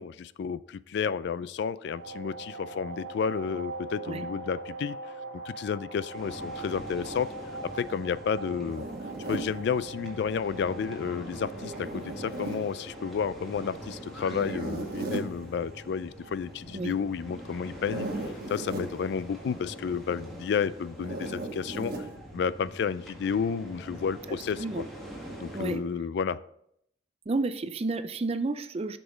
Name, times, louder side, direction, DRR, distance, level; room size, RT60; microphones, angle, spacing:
voice 1, 0.0-5.0 5.5-7.3 7.6-8.9 9.3-18.1 18.5-21.9 22.3-24.8 25.4-26.4, left 6 dB, 65° left, 17 dB, 0.3 m, -31 dB
sound 1, 1.9-20.5, right 2 dB, 80° right, 1.0 m, -44 dB
sound 2, 6.1-25.8, equal, ahead, 1.8 m, -44 dB
Zipper (clothing), 8.7-9.5 11.5-12.7 14.2-15.3 17.7-18.9 21.0-22.1, right 2 dB, 55° right, 1.2 m, -36 dB
voice 2, 24.3-24.8 25.5-25.8 27.3-29.0, right 3 dB, 35° right, 12 dB, 0.4 m, -31 dB
7.8 x 6.2 x 3.9 m, 0.72 s
head